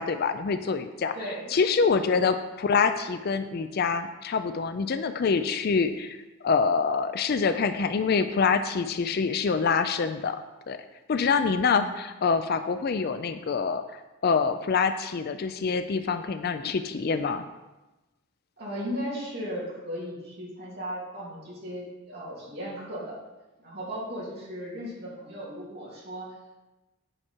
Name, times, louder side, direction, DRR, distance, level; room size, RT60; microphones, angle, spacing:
voice 1, 0.0-1.1 1.5-10.4 10.7-10.8 11.1-13.8 14.2-17.4, left 5 dB, 45° left, 10 dB, 0.3 m, -25 dB
voice 2, 18.6-23.2 23.6-26.3, equal, 45° right, -6 dB, 2.6 m, -36 dB
8.9 x 4.8 x 4.5 m, 1.1 s
head